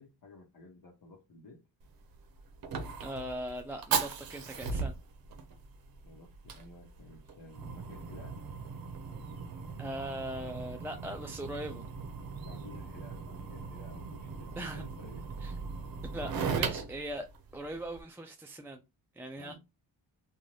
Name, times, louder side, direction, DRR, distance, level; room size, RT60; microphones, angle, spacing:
voice 1, 0.0-1.6 6.0-8.4 12.4-15.2 19.4-19.6, left 2 dB, 50° left, 0.9 m, -53 dB
Fire, 1.8-18.0, right 5 dB, 55° right, 0.7 m, -38 dB
voice 2, 3.0-4.9 9.8-11.8 14.6-14.8 15.4-15.5 16.1-17.3 17.5-18.8 19.1-19.6, right 1 dB, 5° right, 0.3 m, -40 dB
2.5 x 2.4 x 3.1 m
cardioid pair, 70°, 43 cm